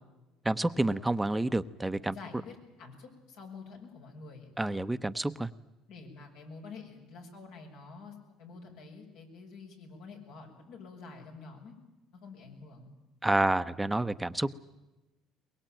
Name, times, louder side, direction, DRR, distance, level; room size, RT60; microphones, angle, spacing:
voice 1, 0.4-2.1 4.6-5.5 13.2-14.5, right 2 dB, 10° right, 11 dB, 0.8 m, -29 dB
voice 2, 2.1-4.5 5.9-11.7 12.1-12.9, left 4 dB, 80° left, 1 dB, 7.0 m, -48 dB
23.0 x 22.0 x 9.1 m, 1.1 s
supercardioid pair, 85°, 0 cm